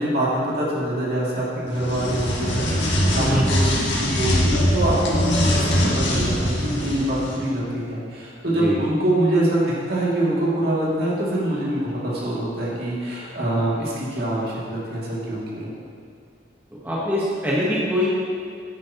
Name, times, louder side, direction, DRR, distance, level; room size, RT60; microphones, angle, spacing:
voice 1, 0.0-2.7 3.1-9.6 9.9-15.7, right 1 dB, 60° right, -7 dB, 2.4 m, -24 dB
sound 1, 1.7-7.4, equal, 75° left, 1.7 m, -22 dB
voice 2, 3.2-3.5 8.6-8.8 16.8-18.1, equal, 10° right, -7 dB, 1.2 m, -23 dB
9.9 x 9.2 x 2.9 m, 2.4 s
head